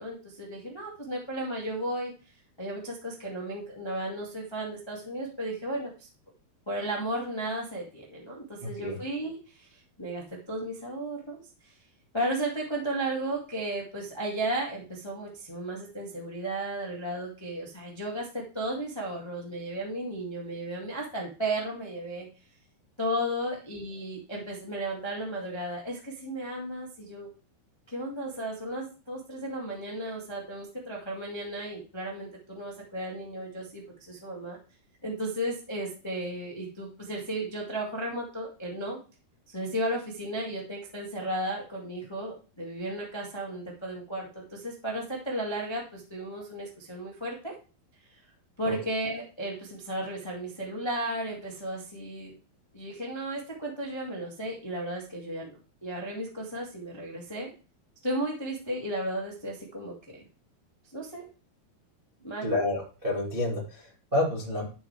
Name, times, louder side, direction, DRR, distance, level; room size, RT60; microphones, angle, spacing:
voice 1, 0.0-2.1 2.6-6.1 6.7-11.7 12.1-22.3 23.0-27.3 27.9-34.6 35.0-39.0 39.5-47.5 48.6-52.3 52.7-57.5 58.0-60.2 60.9-61.3 62.2-62.5, right 1 dB, 25° left, -2 dB, 0.6 m, -34 dB
voice 2, 62.4-64.6, left 1 dB, 45° right, -2 dB, 0.6 m, -29 dB
11.5 x 6.0 x 3.4 m, 0.35 s
omnidirectional pair, 4.7 m